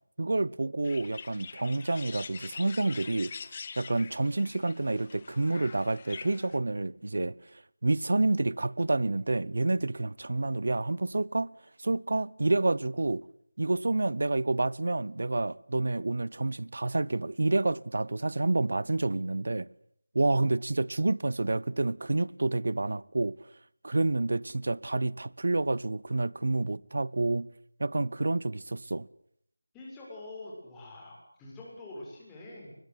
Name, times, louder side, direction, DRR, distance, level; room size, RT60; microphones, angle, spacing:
voice 1, 0.2-3.3 3.8-11.5 11.8-13.2 13.6-19.7 20.1-23.4 23.8-27.5 27.8-29.1, right 2 dB, 60° right, 0.9 m, -29 dB
sound 1, 0.8-6.6, left 5 dB, 30° left, 0.9 m, -45 dB
voice 2, 29.7-32.7, left 2 dB, 10° left, 7.1 m, -45 dB
24.5 x 21.5 x 8.3 m
figure-of-eight pair, 170°, 0 cm